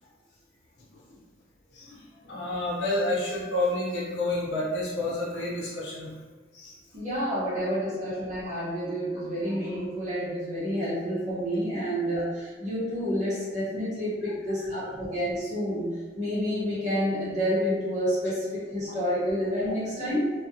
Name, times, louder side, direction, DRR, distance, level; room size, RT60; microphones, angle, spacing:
voice 1, 1.7-6.1 6.5-6.8 11.7-11.8, left 1 dB, 80° left, -6 dB, 0.8 m, -30 dB
voice 2, 6.9-15.9 16.2-20.3, equal, 40° right, -10 dB, 0.7 m, -29 dB
2.3 x 2.1 x 2.7 m, 1.4 s
head